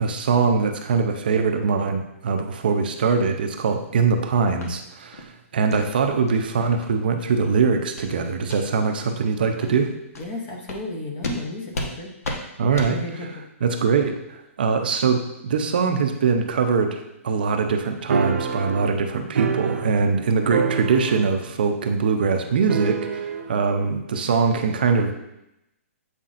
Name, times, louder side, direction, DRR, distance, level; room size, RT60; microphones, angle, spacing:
voice 1, 0.0-9.9 12.6-13.0 13.6-25.1, right 5 dB, 40° right, 5 dB, 0.6 m, -22 dB
sound 1, 4.6-4.7 5.1-5.3 5.7-5.9 6.3-6.4 6.8-6.9 7.3-7.5 8.0-8.1 8.4-8.6 9.1-9.2 9.6-9.7 10.1-10.3 10.7-10.8 11.2-11.4 11.7-11.9 12.2-12.4 12.7-12.9, left 2 dB, 80° left, 1.2 m, -32 dB
voice 2, 10.2-12.1 12.7-13.4, left 2 dB, 15° left, 1 dB, 0.6 m, -33 dB
sound 2, 18.1-20.2 20.5-21.5 21.8-21.9 22.7-23.5, right 5 dB, 80° right, 0.7 m, -26 dB
8.0 x 5.6 x 2.5 m, 0.86 s
hypercardioid pair, 180°, 8 cm